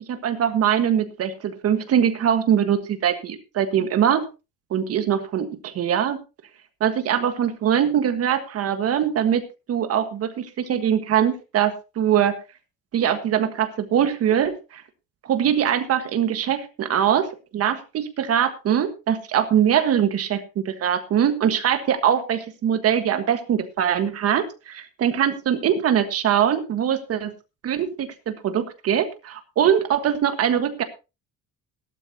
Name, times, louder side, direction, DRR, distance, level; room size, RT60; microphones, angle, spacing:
voice 1, 0.1-4.2 4.7-5.4 5.8-6.2 6.8-9.4 9.7-12.4 12.9-14.8 15.2-27.3 27.6-30.8, right 9 dB, 45° right, 8 dB, 1.5 m, -22 dB
17.0 x 12.5 x 2.9 m, 0.29 s
cardioid pair, 165°, 35 cm